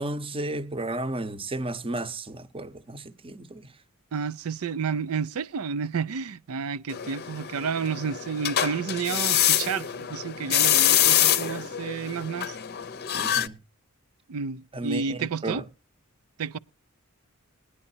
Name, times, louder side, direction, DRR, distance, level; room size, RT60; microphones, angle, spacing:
voice 1, 0.0-3.7 13.1-13.6 14.7-15.6, right 2 dB, 25° right, 0.8 m, -33 dB
voice 2, 4.1-12.6 14.3-15.6 16.4-16.6, right 6 dB, 75° right, 0.5 m, -31 dB
sound 1, 6.9-13.5, left 10 dB, 50° left, 0.6 m, -25 dB
20.0 x 9.7 x 2.8 m
head